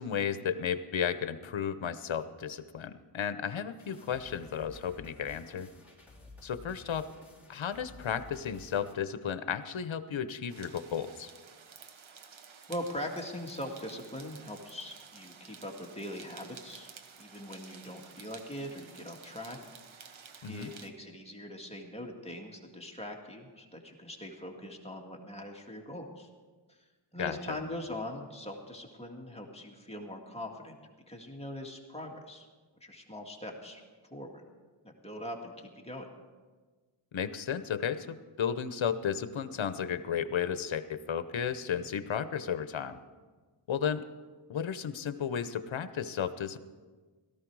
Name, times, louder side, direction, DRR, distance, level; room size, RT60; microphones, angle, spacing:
voice 1, 0.0-5.7 6.4-7.1 7.5-11.3 20.4-20.7 27.2-27.6 37.1-43.0 43.7-44.1 44.5-46.6, left 8 dB, 75° left, 12 dB, 0.9 m, -33 dB
sound 1, 3.8-8.9, left 2 dB, 5° right, 4.0 m, -53 dB
sound 2, 10.5-20.9, right 6 dB, 75° right, 1.1 m, -52 dB
voice 2, 12.7-16.9 17.2-19.6 19.9-26.3 26.7-26.8 27.1-30.8 31.1-32.5 32.8-34.5 34.8-36.1, left 1 dB, 15° left, 0 dB, 2.0 m, -42 dB
17.0 x 14.0 x 4.7 m, 1.4 s
wide cardioid pair, 100°, 47 cm